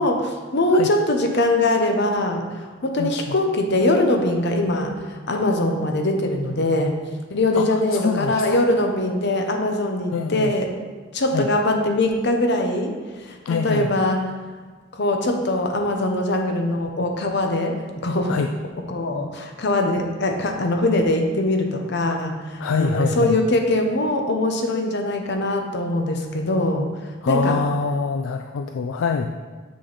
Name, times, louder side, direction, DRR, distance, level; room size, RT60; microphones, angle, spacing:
voice 1, 0.0-7.0 7.3-10.8 11.1-14.3 14.9-18.3 18.9-26.9 27.3-27.6, left 1 dB, 60° left, 4 dB, 0.8 m, -22 dB
voice 2, 3.0-3.3 7.6-8.6 10.1-10.5 11.3-11.5 13.5-13.9 18.3-18.5 22.6-23.3 27.2-29.3, left 5 dB, 75° left, 6 dB, 0.3 m, -25 dB
6.3 x 6.1 x 4.0 m, 1.4 s
head